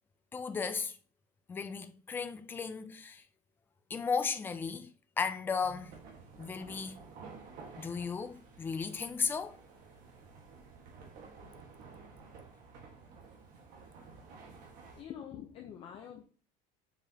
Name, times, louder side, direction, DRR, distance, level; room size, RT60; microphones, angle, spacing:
voice 1, 0.3-1.0 1.5-3.2 3.9-4.9 5.2-6.0 6.4-7.0 7.8-9.6, left 5 dB, 10° left, 0.4 m, -35 dB
sound 1, 5.6-15.0, right 4 dB, 55° right, 1.7 m, -52 dB
voice 2, 14.9-16.2, left 9 dB, 35° left, 0.8 m, -46 dB
7.1 x 4.9 x 2.9 m
cardioid pair, 175°, 17 cm